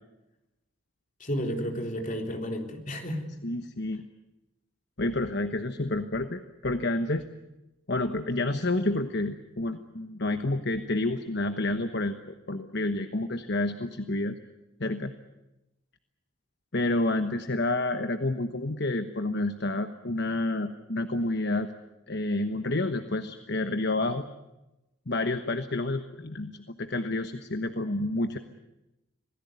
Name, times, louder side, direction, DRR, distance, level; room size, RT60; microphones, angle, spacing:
voice 1, 1.2-3.3, equal, 35° left, 3 dB, 3.8 m, -32 dB
voice 2, 3.4-4.0 5.0-7.3 7.9-14.4 14.8-15.1 16.7-21.7 22.1-24.3 25.1-28.4, left 2 dB, 50° left, 8 dB, 1.2 m, -29 dB
27.0 x 18.0 x 9.4 m, 0.96 s
head